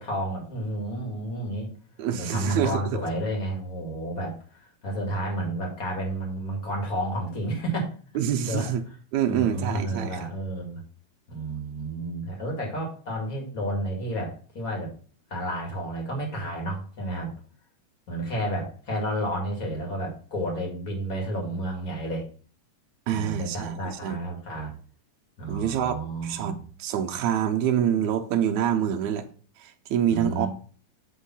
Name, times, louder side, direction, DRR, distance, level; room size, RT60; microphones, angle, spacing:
voice 1, 0.0-1.7 2.2-7.9 8.5-8.7 9.3-10.8 11.3-14.9 15.3-17.3 18.1-22.3 23.1-24.7 25.4-26.6 30.1-30.5, right 1 dB, 30° left, 2.2 m, -31 dB
voice 2, 2.0-3.0 8.2-8.8 9.1-10.3 23.1-24.2 25.5-29.2 29.6-30.5, right 9 dB, 75° right, 2.1 m, -26 dB
8.2 x 3.7 x 5.6 m
omnidirectional pair, 3.5 m